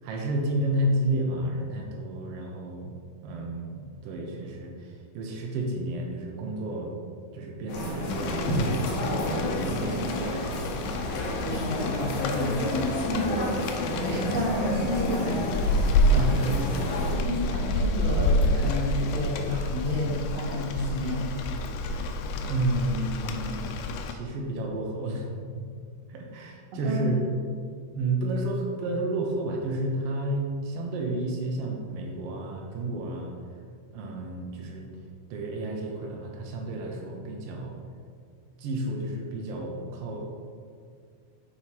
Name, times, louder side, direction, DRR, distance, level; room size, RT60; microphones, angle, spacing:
voice 1, 0.0-6.9 7.3-11.1 13.3-13.5 16.1-16.9 17.2-17.4 21.9-22.0 22.5-25.3 25.5-25.6 26.1-27.3 27.9-33.3 33.9-34.9 35.3-37.8 38.6-40.3, right 1 dB, 85° right, 0 dB, 1.3 m, -31 dB
sound 1, 7.7-17.2, left 1 dB, 65° left, 2.2 m, -30 dB
Rain, 8.1-24.1, left 1 dB, 80° left, 2.1 m, -29 dB
voice 2, 11.4-13.3 14.0-15.4 17.1-21.3 26.8-27.0, left 1 dB, 65° right, -2 dB, 1.9 m, -30 dB
6.9 x 4.2 x 4.4 m, 2.1 s
omnidirectional pair, 3.8 m